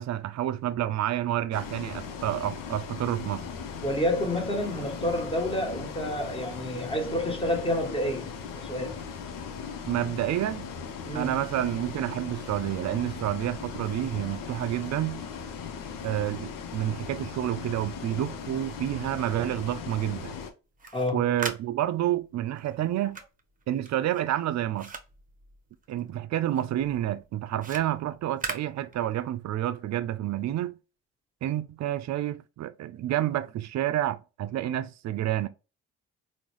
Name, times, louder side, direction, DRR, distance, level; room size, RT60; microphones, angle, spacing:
voice 1, 0.0-3.5 9.9-10.7 11.1-15.2 16.0-20.4 21.1-23.2 23.7-24.9 25.9-30.8 31.4-35.5, right 12 dB, 55° right, 0.5 m, -29 dB
Bus, 1.5-20.5, left 6 dB, 75° left, 0.7 m, -38 dB
voice 2, 3.8-9.0 11.0-11.4 20.9-21.4, left 1 dB, 15° left, 1.3 m, -29 dB
sound 1, 20.6-26.2 26.5-29.4, right 5 dB, 25° right, 0.8 m, -41 dB
3.7 x 2.2 x 3.0 m
supercardioid pair, 55°, 33 cm